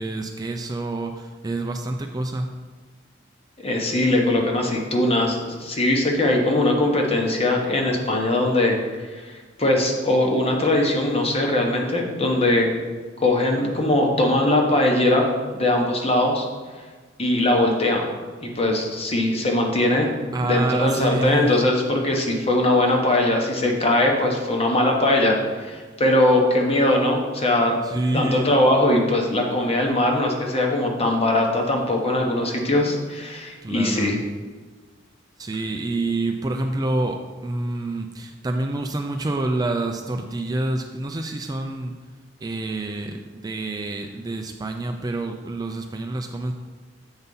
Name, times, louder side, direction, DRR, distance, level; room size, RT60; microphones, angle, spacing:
voice 1, 0.0-2.5 20.3-21.6 27.8-28.6 33.6-34.2 35.4-41.9 42.4-46.5, right 2 dB, 20° right, 4 dB, 0.4 m, -27 dB
voice 2, 3.6-12.7 13.2-16.5 17.2-18.1 18.4-20.1 20.4-27.8 28.1-34.2, left 1 dB, 30° left, 1 dB, 1.1 m, -21 dB
7.9 x 4.1 x 5.4 m, 1.4 s
head